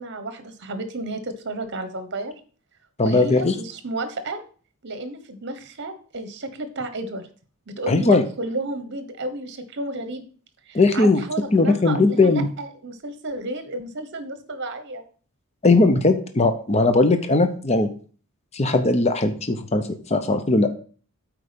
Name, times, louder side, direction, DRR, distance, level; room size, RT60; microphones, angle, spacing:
voice 1, 0.0-2.3 3.0-4.4 4.8-7.3 7.7-10.2 10.7-15.0, right 2 dB, 55° right, 9 dB, 1.1 m, -32 dB
voice 2, 3.0-3.5 7.9-8.2 10.7-11.2 11.5-12.5 15.6-17.9 18.5-20.7, left 3 dB, 30° left, 8 dB, 0.7 m, -19 dB
8.3 x 4.6 x 5.1 m, 0.42 s
head